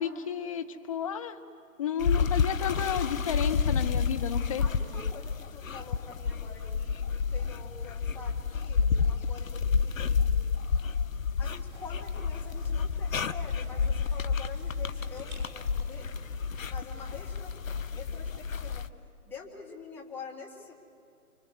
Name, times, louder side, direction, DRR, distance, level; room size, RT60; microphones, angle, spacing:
voice 1, 0.0-1.4 1.8-4.6, left 8 dB, 25° left, 7 dB, 0.9 m, -32 dB
sound 1, 2.0-18.9, left 6 dB, 60° left, 1.0 m, -30 dB
voice 2, 4.6-10.3 11.4-16.1 16.7-18.9 19.2-20.8, left 5 dB, 5° left, -3 dB, 1.6 m, -46 dB
sound 2, 11.5-16.6, right 3 dB, 45° right, 7.4 m, -49 dB
27.0 x 25.0 x 8.1 m, 2.5 s
figure-of-eight pair, 145°, 45 cm